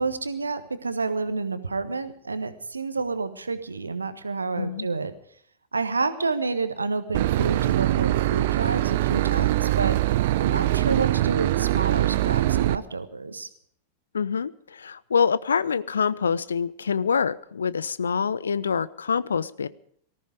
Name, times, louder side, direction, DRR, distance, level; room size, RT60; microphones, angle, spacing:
voice 1, 0.0-5.1 5.7-10.0 10.4-13.5, right 4 dB, 80° right, 11 dB, 1.4 m, -29 dB
voice 2, 4.6-4.9 14.1-19.7, left 6 dB, 70° left, 18 dB, 0.6 m, -25 dB
Boat Water vehicle / Engine, 7.1-12.8, right 15 dB, 55° right, 0.6 m, -23 dB
19.0 x 14.5 x 5.1 m, 0.62 s
figure-of-eight pair, 90°, 0 cm